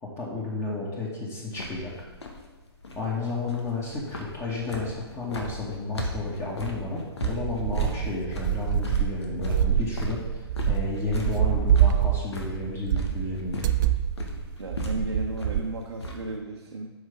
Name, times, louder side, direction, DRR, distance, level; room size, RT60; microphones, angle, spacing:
voice 1, 0.0-1.9 3.0-13.6, left 3 dB, 20° left, -4 dB, 2.1 m, -32 dB
sound 1, 1.5-16.4, left 1 dB, 75° left, 1.7 m, -37 dB
sound 2, 7.2-15.6, right 10 dB, 45° right, 0.5 m, -26 dB
voice 2, 14.6-16.9, right 2 dB, 85° right, -1 dB, 1.2 m, -34 dB
12.0 x 5.7 x 3.7 m, 1.3 s
figure-of-eight pair, 125°, 14 cm